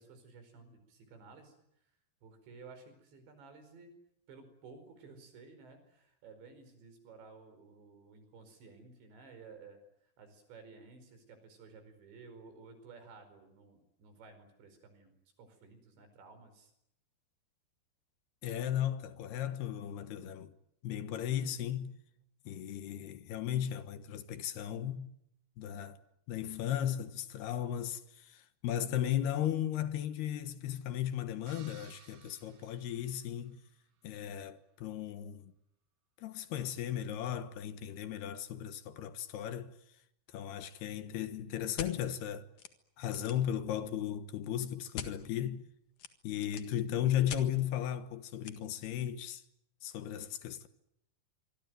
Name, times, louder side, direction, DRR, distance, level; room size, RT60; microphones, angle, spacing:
voice 1, 0.0-1.6 2.2-4.0 4.3-9.8 10.2-16.7, right 4 dB, 85° right, 7.1 m, -55 dB
voice 2, 18.4-20.5 20.8-22.0 22.5-25.1 25.6-26.0 26.3-33.6 34.0-35.5 36.2-39.7 40.3-42.5 43.0-45.6 46.2-49.4 49.8-50.7, left 10 dB, 70° left, 3.1 m, -36 dB
sound 1, 31.5-33.7, right 9 dB, 60° right, 2.9 m, -59 dB
sound 2, 41.8-41.9 42.6-42.7 43.0-43.5 44.9-45.1 46.0-46.7 47.3-47.4 48.4-48.5, left 7 dB, 55° left, 2.7 m, -42 dB
25.5 x 24.0 x 9.3 m
omnidirectional pair, 5.0 m